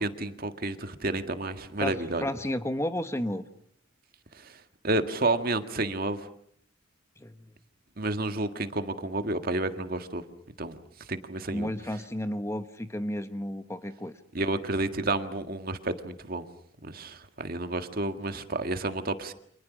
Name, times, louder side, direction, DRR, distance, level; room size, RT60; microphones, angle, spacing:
voice 1, 0.0-2.2 4.4-4.6 4.8-6.2 8.0-10.2 10.6-10.8 11.1-11.7 14.3-16.4 16.8-19.3, right 2 dB, 45° right, 8 dB, 1.8 m, -30 dB
voice 2, 1.8-3.4 7.2-7.3 11.5-14.1, left 1 dB, 15° left, 9 dB, 1.0 m, -32 dB
29.5 x 26.0 x 6.2 m, 0.66 s
head